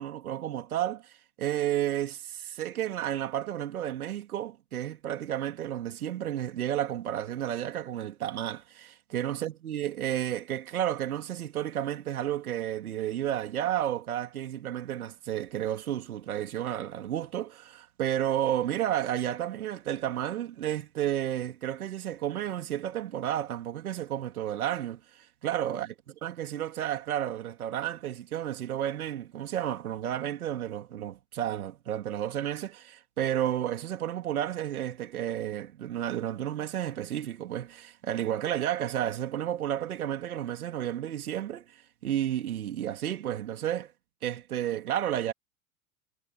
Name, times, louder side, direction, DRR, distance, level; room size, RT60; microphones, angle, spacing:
voice 1, 0.0-25.9 26.2-43.9 44.2-45.3, right 11 dB, 75° right, 3.2 m, -32 dB
hypercardioid pair, 85°, 43 cm